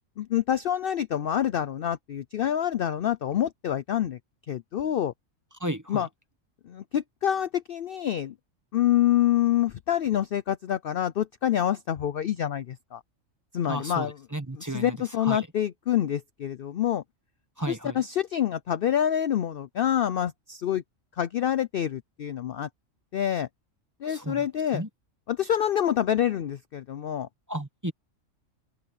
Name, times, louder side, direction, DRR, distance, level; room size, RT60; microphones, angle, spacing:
voice 1, 0.2-4.2 4.5-5.1 5.9-6.1 6.6-8.3 8.7-13.0 13.5-14.2 14.5-17.0 17.7-20.8 21.1-22.7 23.1-23.5 24.0-24.8 25.3-27.3, left 10 dB, 60° left, 0.6 m, -27 dB
voice 2, 5.6-6.0 13.7-14.1 14.3-14.9 15.2-15.4 17.6-18.0 24.1-24.4 24.7-24.9 27.5-27.9, right 1 dB, 15° right, 1.0 m, -32 dB
open air
omnidirectional pair, 1.4 m